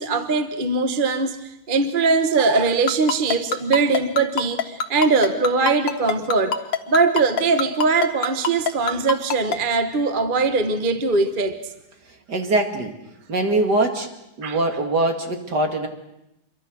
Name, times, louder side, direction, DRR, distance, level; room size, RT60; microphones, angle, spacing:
voice 1, 0.0-6.6 6.9-11.6 14.4-14.6, right 4 dB, 30° right, 8 dB, 1.2 m, -21 dB
Ringtone, 2.9-9.6, left 5 dB, 75° left, 2.1 m, -23 dB
voice 2, 12.3-12.9 13.3-14.1 14.4-15.9, right 2 dB, 60° right, 4 dB, 2.9 m, -22 dB
27.0 x 23.0 x 6.4 m, 0.87 s
omnidirectional pair, 2.0 m